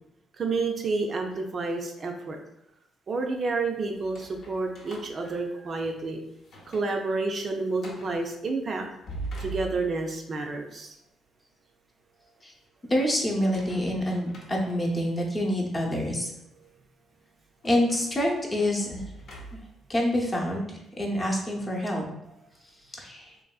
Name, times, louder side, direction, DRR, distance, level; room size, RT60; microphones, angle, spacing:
voice 1, 0.4-2.4 3.1-6.2 6.7-8.9 9.4-11.0, right 3 dB, 45° right, 2 dB, 0.4 m, -29 dB
sound 1, 3.9-6.0 6.4-7.0 7.3-7.4 7.8-8.2 8.8-10.2 13.3-15.1 15.7-15.9 17.6-19.9, right 2 dB, 65° left, 0.7 m, -43 dB
voice 2, 12.9-16.3 17.6-19.0 19.5-19.6 19.9-22.0 23.0-23.3, left 1 dB, 25° left, -1 dB, 0.7 m, -27 dB
2.9 x 2.5 x 2.3 m, 0.85 s
cardioid pair, 90°, 0 cm